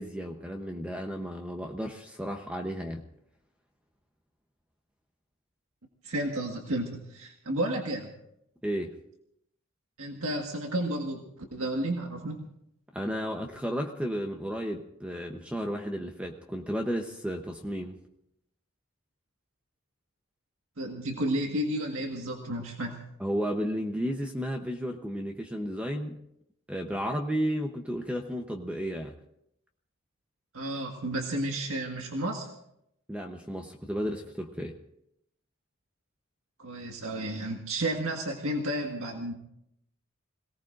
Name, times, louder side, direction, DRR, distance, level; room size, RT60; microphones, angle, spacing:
voice 1, 0.0-3.0 8.6-9.0 12.9-18.0 23.2-26.2 26.7-29.1 33.1-34.7, equal, 5° right, 3 dB, 0.9 m, -33 dB
voice 2, 6.0-8.1 10.0-11.2 11.5-12.4 20.8-23.0 30.5-32.5 36.6-39.3, right 1 dB, 80° right, 1 dB, 1.7 m, -32 dB
27.0 x 18.5 x 2.6 m, 0.77 s
head